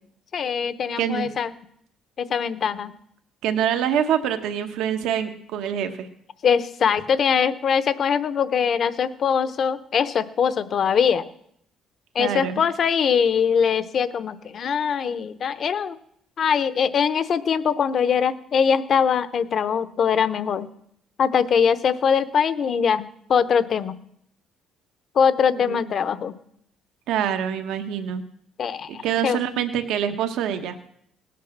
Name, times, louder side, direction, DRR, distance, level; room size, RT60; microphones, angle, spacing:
voice 1, 0.3-1.5 2.2-2.9 6.4-11.3 12.1-16.0 16.4-20.7 21.2-23.0 23.3-23.9 25.1-26.3 28.6-29.4, left 7 dB, 45° left, 13 dB, 0.9 m, -22 dB
voice 2, 1.0-1.3 3.4-6.1 12.2-12.6 25.6-25.8 27.1-28.2 28.9-30.8, right 9 dB, 80° right, 7 dB, 1.2 m, -25 dB
18.0 x 8.5 x 7.3 m, 0.71 s
cardioid pair, 115°, 0 cm